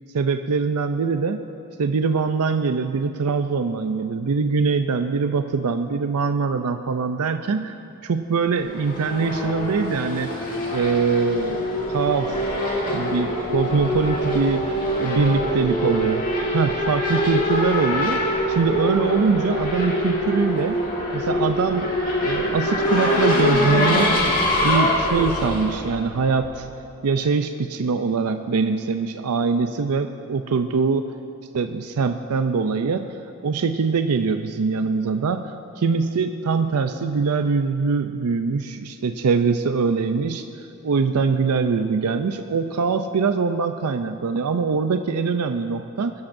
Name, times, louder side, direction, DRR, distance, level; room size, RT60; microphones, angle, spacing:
voice 1, 0.1-1.4 1.8-7.7 8.0-10.3 10.7-12.4 12.9-14.6 15.0-16.2 16.5-18.2 18.5-20.8 21.1-21.9 22.2-26.7 27.0-31.0 31.5-33.2 33.4-40.5 40.8-46.1, right 5 dB, 85° right, 8 dB, 0.5 m, -23 dB
Race car auto racing / Accelerating revving vroom, 8.5-26.7, left 1 dB, 40° left, 2.0 m, -24 dB
21.0 x 13.0 x 2.6 m, 2.6 s
head